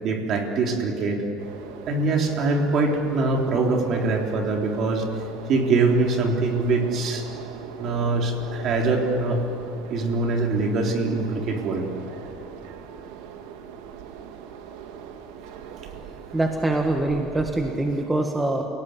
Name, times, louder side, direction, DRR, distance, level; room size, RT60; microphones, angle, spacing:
voice 1, 0.0-1.2 1.9-5.0 5.5-7.3 7.8-9.4 9.9-11.9, right 3 dB, 45° right, 1 dB, 3.7 m, -23 dB
sound 1, 1.4-18.1, right 7 dB, 80° right, 2.0 m, -41 dB
voice 2, 16.3-18.7, right 2 dB, 10° right, 3 dB, 1.6 m, -24 dB
28.5 x 18.5 x 9.6 m, 2.7 s
cardioid pair, 145°, 0 cm